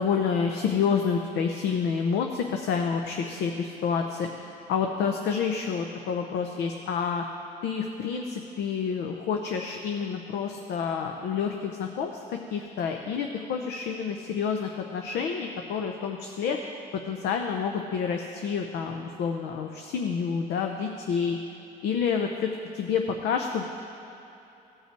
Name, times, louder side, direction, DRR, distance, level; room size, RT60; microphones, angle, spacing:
voice 1, 0.0-7.2 7.6-16.6 17.1-21.4 21.8-23.6, left 6 dB, 75° left, 3 dB, 0.7 m, -28 dB
16.5 x 5.6 x 4.5 m, 2.9 s
cardioid pair, 110°, 17 cm